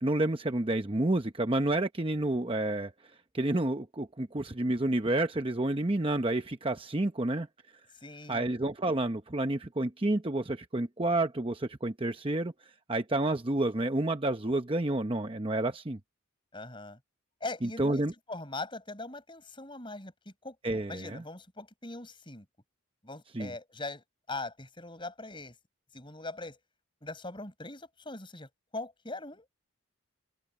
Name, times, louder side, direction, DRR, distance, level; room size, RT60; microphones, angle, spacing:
voice 1, 0.0-2.9 3.3-7.5 8.3-12.5 12.9-16.0 17.6-18.1 20.6-21.2 23.3-23.5, right 2 dB, 25° right, 0.8 m, -29 dB
voice 2, 8.0-8.5 16.5-17.0 17.4-20.6 20.9-22.5 23.0-25.6 25.9-26.6 27.0-29.5, left 2 dB, 25° left, 7.3 m, -41 dB
open air
head